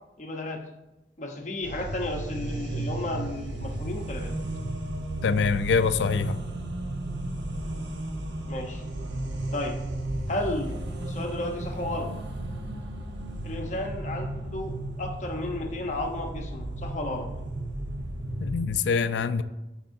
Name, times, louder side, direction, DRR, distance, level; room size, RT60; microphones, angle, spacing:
voice 1, 0.2-0.6 1.2-4.3 8.5-8.8 9.5-9.8 10.3-12.1 13.4-17.3, left 1 dB, 40° left, 2 dB, 0.9 m, -33 dB
sound 1, 1.6-18.7, right 1 dB, 85° right, 0.9 m, -34 dB
voice 2, 5.2-6.4 18.4-19.4, left 5 dB, 85° left, 12 dB, 0.4 m, -24 dB
13.0 x 4.5 x 2.7 m, 0.99 s
head